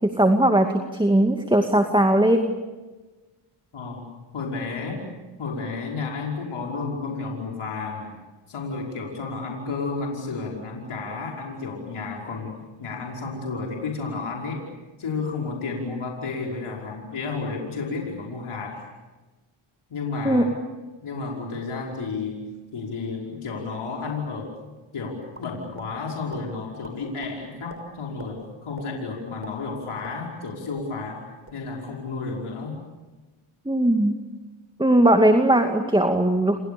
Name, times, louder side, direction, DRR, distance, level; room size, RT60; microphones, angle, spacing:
voice 1, 0.0-2.6 20.2-20.5 33.7-34.1 34.8-36.6, right 1 dB, 10° right, 5 dB, 2.4 m, -19 dB
voice 2, 3.7-4.1 4.3-5.0 5.4-8.1 8.5-14.6 15.0-18.8 19.9-20.5 21.0-22.5 22.7-24.5 24.9-32.8, left 4 dB, 75° left, -1 dB, 5.6 m, -32 dB
sound 1, 25.4-25.9 26.3-26.4 26.8-27.3 27.7-27.8 28.2-28.3 28.8-28.9 29.3-30.5 30.7-30.9 31.3-31.6, right 3 dB, 25° right, 5.9 m, -43 dB
30.0 x 28.0 x 7.0 m, 1.2 s
cardioid pair, 80°, 50 cm